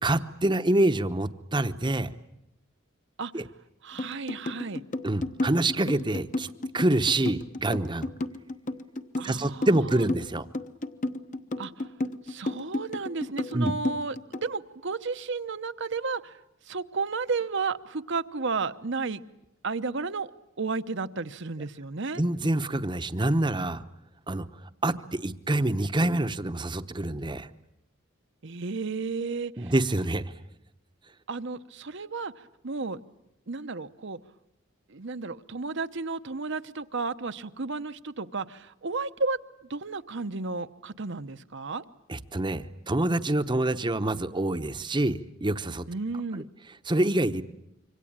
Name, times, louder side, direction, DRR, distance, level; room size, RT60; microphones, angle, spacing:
voice 1, 0.0-2.1 3.3-3.4 5.0-6.5 6.7-8.1 9.2-10.5 13.5-13.7 22.2-23.8 24.3-24.4 24.8-27.5 29.6-30.3 42.1-45.9 46.9-47.4, right 1 dB, 25° right, 11 dB, 0.9 m, -26 dB
voice 2, 3.8-4.8 9.2-9.7 9.9-10.0 11.6-11.9 12.2-16.4 16.6-19.2 19.6-20.3 20.6-22.2 28.4-29.7 31.3-33.0 33.5-34.2 34.9-39.4 39.7-41.8 45.9-46.5, right 4 dB, 60° right, 11 dB, 1.0 m, -33 dB
sound 1, 4.0-14.5, left 2 dB, 40° left, 1.1 m, -32 dB
26.5 x 25.0 x 8.9 m, 0.84 s
head